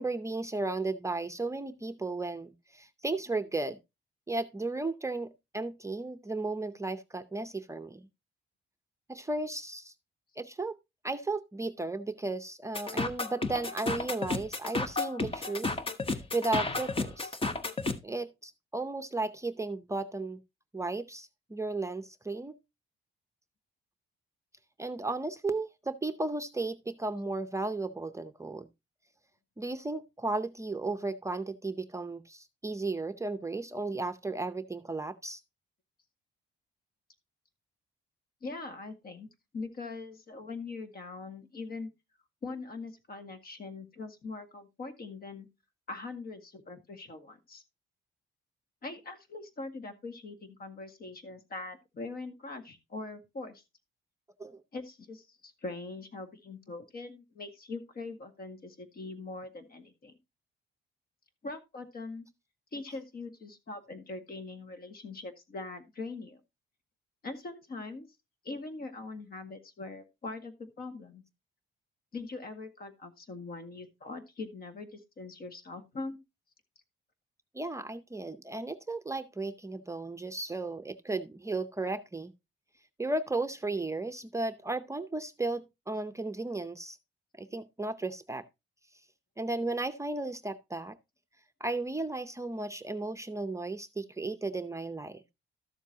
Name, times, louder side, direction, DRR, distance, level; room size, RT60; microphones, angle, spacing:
voice 1, 0.0-3.8 4.3-8.1 9.1-9.9 10.4-10.8 11.0-15.7 16.1-17.3 18.0-20.4 20.7-22.6 24.8-28.7 29.6-35.4 54.4-54.6 77.5-82.3 83.0-87.0 87.4-88.4 89.4-91.0 91.6-95.2, right 2 dB, 15° right, 0.6 m, -34 dB
sound 1, 12.7-18.0, left 3 dB, 25° left, 1.1 m, -32 dB
voice 2, 38.4-39.3 39.5-41.9 42.4-45.5 45.9-47.6 48.8-53.6 54.7-60.1 61.4-62.3 62.7-66.4 67.2-68.1 68.4-71.2 72.1-76.2, left 3 dB, 50° left, 1.8 m, -42 dB
13.0 x 7.2 x 2.8 m
cardioid pair, 90°, 20 cm